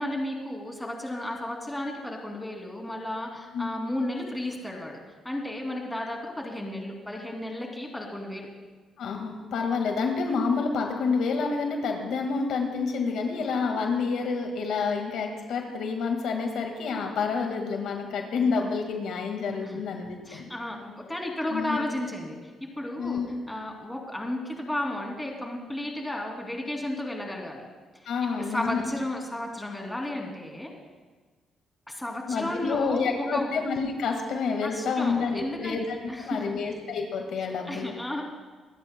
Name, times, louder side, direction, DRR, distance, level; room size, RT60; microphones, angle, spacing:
voice 1, 0.0-5.0 5.2-8.5 19.6-19.8 20.3-22.5 22.8-23.2 23.5-27.6 28.4-30.7 31.9-33.5 34.6-35.8 36.1-36.6 37.7-38.2, left 1 dB, 10° left, 0 dB, 2.7 m, -33 dB
voice 2, 9.0-20.5 21.5-21.8 23.0-23.3 28.1-28.8 32.3-37.9, left 5 dB, 75° left, 3 dB, 1.8 m, -28 dB
25.0 x 13.0 x 2.2 m, 1.4 s
cardioid pair, 90°, 0 cm